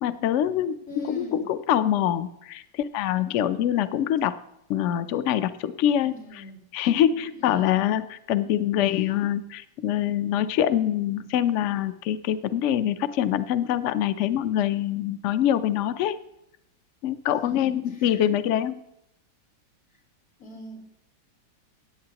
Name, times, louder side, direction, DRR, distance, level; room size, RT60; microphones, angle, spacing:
voice 1, 0.0-0.8 1.1-4.4 4.7-6.4 6.7-16.2 17.0-18.8, left 11 dB, 90° left, 12 dB, 0.6 m, -24 dB
voice 2, 0.9-1.5 6.0-6.6 7.3-7.7 8.8-9.1 17.4-18.3 20.4-21.0, left 1 dB, 50° left, -4 dB, 4.1 m, -41 dB
16.5 x 8.8 x 2.9 m, 0.79 s
omnidirectional pair, 2.0 m